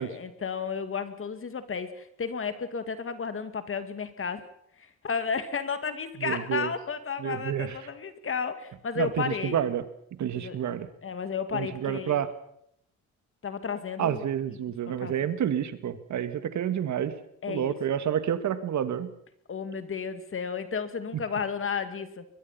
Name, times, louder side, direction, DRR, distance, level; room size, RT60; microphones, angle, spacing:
voice 1, 0.0-4.4 4.8-9.7 10.3-10.6 11.0-12.2 13.4-14.3 15.0-15.1 17.4-17.8 19.5-22.3, left 6 dB, 45° left, 10 dB, 2.3 m, -33 dB
voice 2, 6.2-6.7 7.2-7.8 9.0-9.8 10.2-10.9 11.5-12.3 14.0-17.1 17.5-19.1, right 9 dB, 65° right, 11 dB, 2.1 m, -29 dB
22.0 x 21.0 x 5.8 m, 0.71 s
cardioid pair, 80°, 31 cm